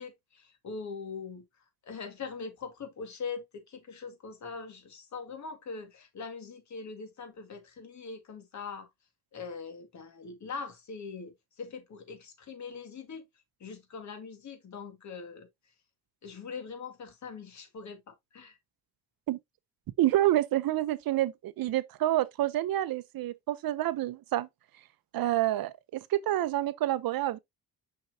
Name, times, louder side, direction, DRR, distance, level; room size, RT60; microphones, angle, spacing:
voice 1, 0.0-1.4 1.8-8.9 9.3-13.2 13.6-15.5 16.2-18.6, left 5 dB, 50° left, 1.9 m, -42 dB
voice 2, 20.0-24.5 25.1-27.4, right 14 dB, 70° right, 0.7 m, -28 dB
6.3 x 5.8 x 2.7 m
cardioid pair, 155°, 37 cm